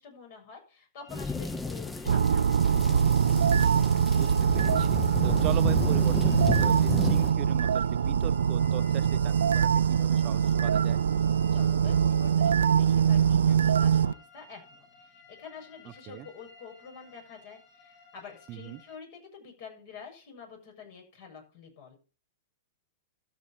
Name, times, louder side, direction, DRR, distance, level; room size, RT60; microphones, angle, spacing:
voice 1, 0.0-3.0 11.5-22.0, left 6 dB, 55° left, 6.9 m, -48 dB
sound 1, 1.0-19.0, left 4 dB, 35° left, 3.1 m, -56 dB
sound 2, 1.1-7.3, left 4 dB, 10° left, 0.8 m, -33 dB
sound 3, 2.1-14.1, right 8 dB, 85° right, 0.4 m, -23 dB
voice 2, 4.1-11.0 16.1-16.3 18.5-18.8, right 15 dB, 40° right, 0.6 m, -39 dB
13.0 x 6.4 x 5.7 m
hypercardioid pair, 120°, 0 cm